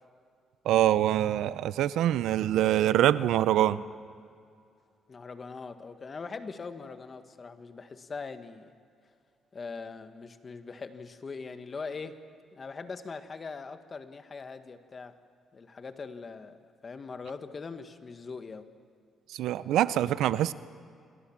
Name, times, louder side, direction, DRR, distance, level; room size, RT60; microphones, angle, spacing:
voice 1, 0.7-3.8 19.3-20.5, right 12 dB, 85° right, 16 dB, 0.6 m, -24 dB
voice 2, 5.1-8.7 9.5-12.2 12.5-15.1 15.5-18.7, left 4 dB, 35° left, 9 dB, 1.6 m, -41 dB
27.5 x 21.5 x 7.4 m, 2.3 s
cardioid pair, 90°, 0 cm